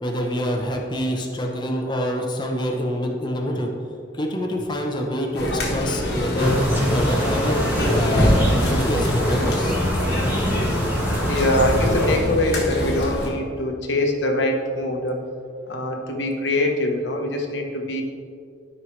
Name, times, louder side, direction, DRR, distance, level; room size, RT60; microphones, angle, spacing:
voice 1, 0.0-3.7 4.1-6.6 6.9-7.6 7.9-9.8, equal, 25° left, 1 dB, 0.9 m, -26 dB
sound 1, 5.3-13.3, equal, 55° left, 1.4 m, -24 dB
sound 2, 6.4-12.2, equal, 10° right, 1.4 m, -24 dB
voice 2, 11.3-15.2 15.7-18.0, left 1 dB, 75° left, 2 dB, 1.1 m, -23 dB
12.5 x 5.5 x 3.2 m, 2.4 s
head